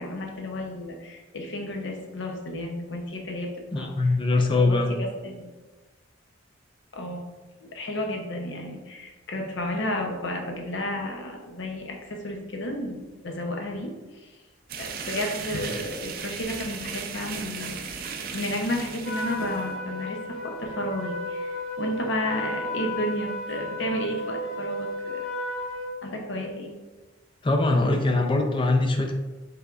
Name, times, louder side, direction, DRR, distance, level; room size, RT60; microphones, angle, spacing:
voice 1, 0.0-4.1 4.6-5.5 6.9-7.3 7.6-14.4 14.8-25.2 26.0-26.7, left 1 dB, 60° left, 1 dB, 0.7 m, -32 dB
voice 2, 3.7-4.9 27.4-29.1, left 2 dB, 25° left, 4 dB, 0.4 m, -22 dB
sound 1, 14.7-19.7, right 6 dB, 45° right, 0.4 m, -36 dB
Trumpet, 19.0-25.9, left 1 dB, ahead, 1.3 m, -33 dB
5.7 x 3.4 x 2.4 m, 1.2 s
head